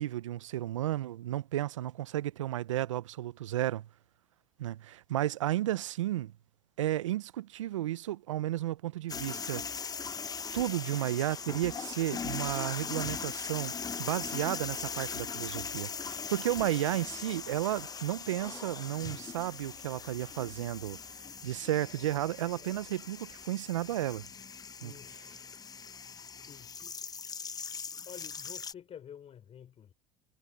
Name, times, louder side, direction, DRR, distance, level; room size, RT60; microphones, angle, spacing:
voice 1, 0.0-3.9 4.6-6.3 6.8-9.9 10.5-13.7 14.0-21.0 21.4-24.2 24.8-24.9, right 13 dB, 85° right, 0.7 m, -33 dB
sound 1, 9.1-28.7, left 6 dB, 25° left, 1.0 m, -40 dB
sound 2, 11.9-23.5, right 2 dB, 10° right, 2.2 m, -61 dB
voice 2, 24.8-25.1 26.5-26.8 28.0-29.9, left 9 dB, 40° left, 5.0 m, -49 dB
hypercardioid pair, 80°, 16 cm